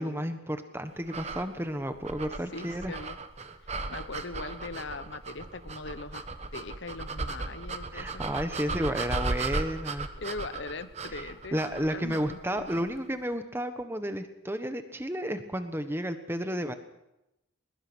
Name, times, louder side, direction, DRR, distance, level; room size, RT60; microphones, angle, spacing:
voice 1, 0.0-2.9 7.9-10.1 11.1-16.7, equal, 10° right, 8 dB, 1.2 m, -32 dB
sound 1, 1.1-13.0, right 3 dB, 30° right, 1.2 m, -36 dB
voice 2, 2.5-3.2 3.7-6.2 6.5-8.1 8.6-8.9 10.2-12.9, left 3 dB, 65° left, 12 dB, 1.1 m, -41 dB
21.0 x 21.0 x 6.2 m, 0.90 s
head